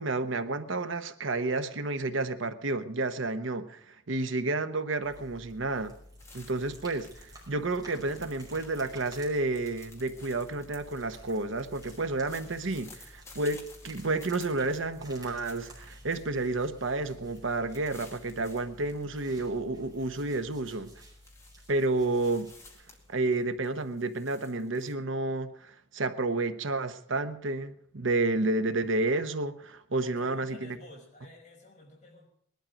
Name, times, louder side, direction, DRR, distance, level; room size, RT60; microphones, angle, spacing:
voice 1, 0.0-5.9 6.3-20.9 21.7-22.5 23.1-30.8, right 2 dB, 80° right, 1.0 m, -30 dB
sound 1, 5.0-23.9, equal, 20° right, 5.5 m, -52 dB
sound 2, 6.2-7.5 7.8-16.5 16.9-17.0 17.3-19.1 19.4-19.9 20.3-24.9, left 3 dB, 15° left, 2.1 m, -55 dB
voice 2, 7.8-8.5 12.3-12.9 30.0-32.3, left 1 dB, 35° left, 5.2 m, -52 dB
20.0 x 12.0 x 5.2 m
head